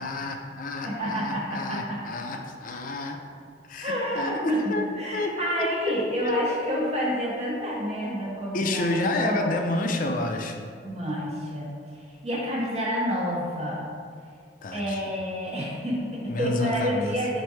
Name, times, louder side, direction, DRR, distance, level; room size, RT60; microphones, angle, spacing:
voice 1, 0.0-3.2 3.6-4.9 5.1-6.6 8.5-10.6 14.6-15.2 16.3-17.2, left 2 dB, 50° left, 4 dB, 0.4 m, -30 dB
voice 2, 0.8-2.0 2.7-2.8 3.8-4.6 5.0-8.9 9.2-9.7 10.8-13.9 14.7-17.4, equal, 35° right, -5 dB, 0.6 m, -29 dB
4.4 x 2.6 x 4.6 m, 2.2 s
head